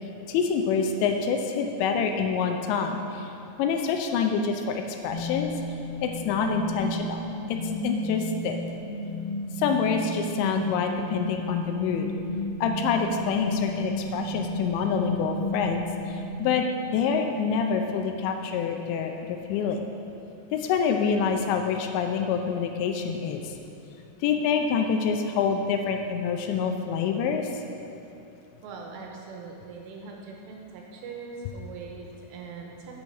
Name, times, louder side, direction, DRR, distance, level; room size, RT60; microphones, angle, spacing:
voice 1, 0.3-3.3 3.6-5.5 6.0-8.6 9.6-12.1 12.6-19.9 20.5-23.5 24.2-27.5, left 6 dB, 80° left, 4 dB, 2.8 m, -26 dB
sound 1, 5.1-17.1, left 1 dB, 50° left, 2.9 m, -33 dB
voice 2, 28.6-33.0, right 4 dB, 80° right, 0 dB, 2.8 m, -41 dB
8.4 x 6.2 x 6.4 m, 2.7 s
omnidirectional pair, 5.3 m